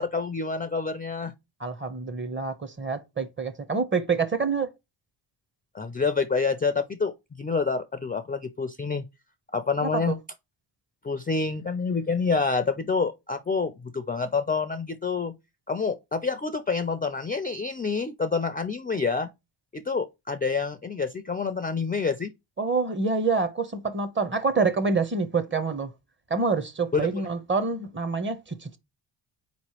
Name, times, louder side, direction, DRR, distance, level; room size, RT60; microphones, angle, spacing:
voice 1, 0.0-1.3 5.7-9.1 9.5-10.2 11.0-15.3 15.7-19.3 19.7-22.3 26.9-27.1, left 4 dB, 20° left, 0.3 m, -27 dB
voice 2, 1.6-4.7 9.8-10.0 22.6-25.9 26.3-28.8, right 4 dB, 25° right, 0.7 m, -27 dB
4.2 x 3.0 x 2.9 m
cardioid pair, 90°, 47 cm